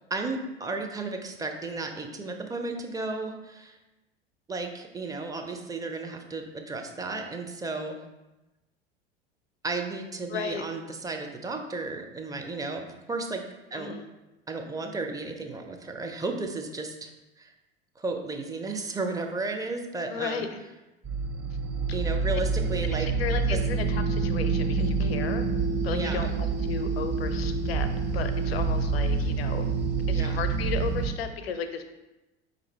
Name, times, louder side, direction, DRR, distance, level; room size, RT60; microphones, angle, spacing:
voice 1, 0.0-3.8 4.5-8.0 9.6-13.4 13.7-13.9 14.5-17.5 18.0-20.5 21.9-23.1 23.5-23.6 24.8-25.2 25.9-26.3 30.1-30.4, right 3 dB, 10° right, 3 dB, 0.4 m, -34 dB
voice 2, 10.3-10.7 13.7-14.0 20.1-20.6 21.9-22.0 23.0-25.5 25.8-27.9 28.1-29.7 30.1-31.8, left 6 dB, 70° left, 8 dB, 0.6 m, -34 dB
sound 1, 21.0-31.1, right 4 dB, 35° right, 0.8 m, -27 dB
4.7 x 2.6 x 4.1 m, 1.0 s
figure-of-eight pair, 75°, 31 cm